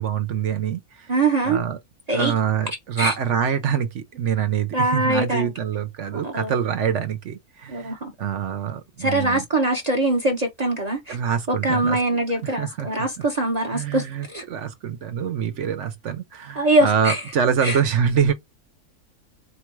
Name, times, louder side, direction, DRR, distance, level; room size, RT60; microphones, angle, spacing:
voice 1, 0.0-1.1 1.4-1.8 2.1-9.4 11.1-12.0 12.4-13.1 13.7-18.3, right 8 dB, 55° right, 1.0 m, -25 dB
voice 2, 1.1-1.6 2.1-2.3 3.0-3.1 4.7-5.5 6.1-6.6 7.7-8.1 9.0-11.2 11.5-14.4 16.6-17.2 17.6-17.8, right 2 dB, 35° right, 0.8 m, -23 dB
4.6 x 2.3 x 3.2 m
omnidirectional pair, 1.6 m